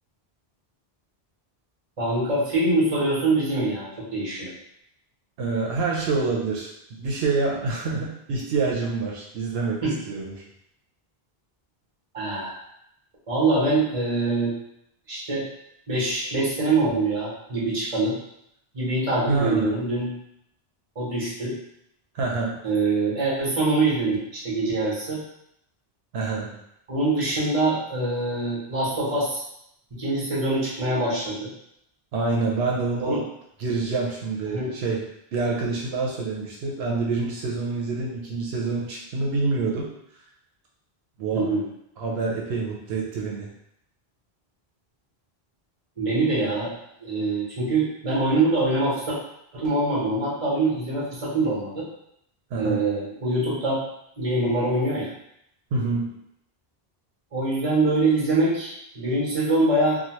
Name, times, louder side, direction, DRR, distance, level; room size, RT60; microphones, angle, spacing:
voice 1, 2.0-4.5 9.8-10.0 12.1-12.5 13.3-14.5 15.1-15.4 15.9-18.2 18.7-20.1 20.9-21.6 22.6-25.2 26.9-29.4 29.9-31.5 33.0-33.2 34.5-34.7 41.3-41.6 46.0-46.7 47.0-49.2 49.5-51.8 52.6-53.8 54.2-55.1 57.3-60.0, right 2 dB, 35° right, -7 dB, 1.1 m, -24 dB
voice 2, 5.4-6.7 7.0-10.4 19.3-19.7 22.1-22.6 26.1-26.6 32.1-33.2 33.6-35.0 35.3-39.9 41.2-41.5 42.0-43.5 52.5-52.8 55.7-56.1, right 3 dB, 80° right, -3 dB, 0.8 m, -26 dB
2.9 x 2.2 x 2.9 m, 0.76 s
omnidirectional pair, 1.0 m